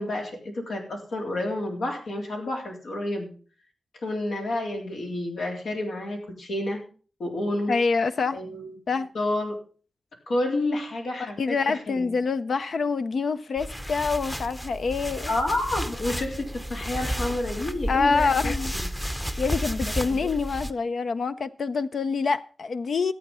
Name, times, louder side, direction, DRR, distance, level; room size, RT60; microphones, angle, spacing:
voice 1, 0.0-3.3 4.0-6.8 7.2-7.7 8.3-8.8 9.1-9.5 10.3-12.1 15.3-18.5 18.8-18.9 20.0-20.2, left 1 dB, 85° left, 3.4 m, -29 dB
voice 2, 7.7-8.4 8.9-9.1 11.4-15.3 17.9-18.7 19.4-23.1, left 4 dB, 65° left, 0.5 m, -26 dB
sound 1, 13.6-20.7, equal, 5° left, 0.7 m, -32 dB
13.5 x 8.4 x 5.5 m
wide cardioid pair, 110°, 0 cm